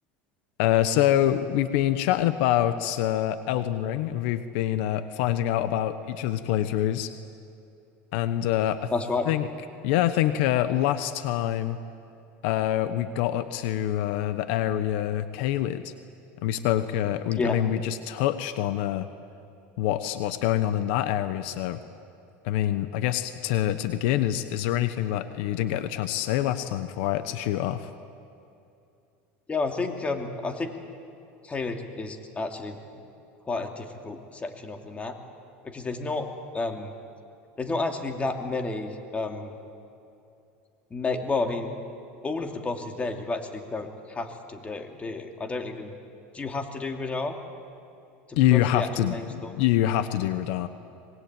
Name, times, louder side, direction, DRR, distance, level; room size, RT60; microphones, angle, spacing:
voice 1, 0.6-7.1 8.1-8.9 9.3-9.5 9.8-11.8 12.4-15.9 16.4-19.1 19.8-21.8 22.4-27.9 48.4-50.7, left 12 dB, 70° left, 11 dB, 1.1 m, -25 dB
voice 2, 8.9-9.3 17.3-17.6 29.5-30.7 31.4-32.8 33.5-35.2 35.6-36.3 36.5-36.9 37.6-39.5 40.9-41.7 42.2-45.9 46.3-47.3 48.3-49.5, left 3 dB, 20° left, 5 dB, 2.6 m, -31 dB
25.0 x 21.5 x 9.1 m, 2.7 s
supercardioid pair, 120°, 6 cm